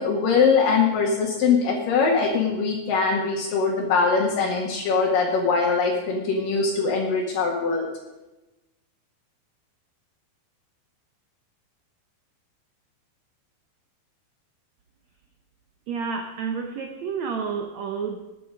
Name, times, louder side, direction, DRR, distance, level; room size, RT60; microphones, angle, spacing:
voice 1, 0.0-7.9, left 5 dB, 60° left, -2 dB, 3.2 m, -22 dB
voice 2, 15.9-18.2, right 6 dB, 80° right, 4 dB, 1.5 m, -30 dB
21.5 x 8.4 x 5.2 m, 1.0 s
omnidirectional pair, 4.7 m